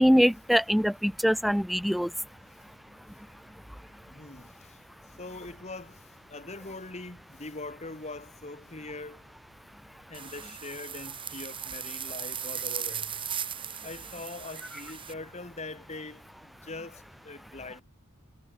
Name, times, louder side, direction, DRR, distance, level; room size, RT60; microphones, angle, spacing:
voice 1, 0.0-2.1, equal, ahead, 0.7 m, -23 dB
voice 2, 3.8-9.3 10.1-13.2 13.8-17.8, left 3 dB, 30° left, 2.3 m, -42 dB
sound 1, 10.1-15.1, right 8 dB, 25° right, 3.5 m, -37 dB
head